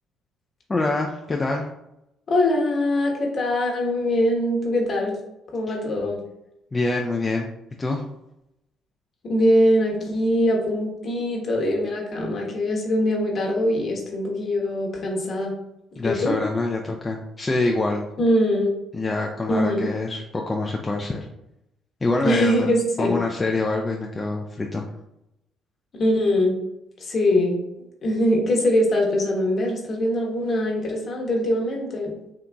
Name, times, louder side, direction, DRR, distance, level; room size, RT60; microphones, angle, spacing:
voice 1, 0.7-1.7 5.7-5.8 6.7-7.5 7.8-8.0 16.0-18.1 18.9-21.3 22.0-22.7 23.0-24.9, left 2 dB, 25° left, 0 dB, 0.4 m, -25 dB
voice 2, 2.3-5.2 5.5-6.2 9.2-15.5 16.0-16.4 18.2-18.7 19.5-19.9 22.2-23.2 25.9-26.5 27.0-27.6 28.0-32.1, left 1 dB, 50° left, 0 dB, 1.0 m, -22 dB
3.8 x 2.8 x 2.3 m, 0.85 s
supercardioid pair, 60°, 0 cm